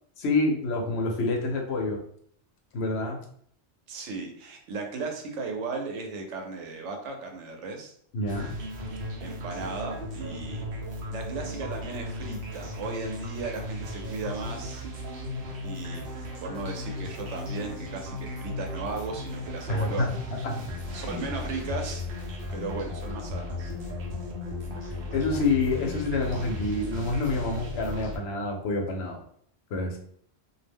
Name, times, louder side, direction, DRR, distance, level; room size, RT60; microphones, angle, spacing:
voice 1, 0.2-2.0 2.7-3.2 8.1-8.6 19.7-20.1 20.4-20.7 20.9-21.2 25.1-29.2 29.7-30.0, left 3 dB, 70° left, 1 dB, 0.9 m, -27 dB
voice 2, 3.9-7.9 9.2-10.6 11.1-14.8 15.6-16.0 16.4-20.2 20.9-23.7, right 3 dB, 90° right, 3 dB, 1.0 m, -36 dB
sound 1, 8.3-28.2, left 1 dB, 60° right, 0.8 m, -36 dB
2.4 x 2.1 x 3.4 m, 0.63 s
omnidirectional pair, 1.2 m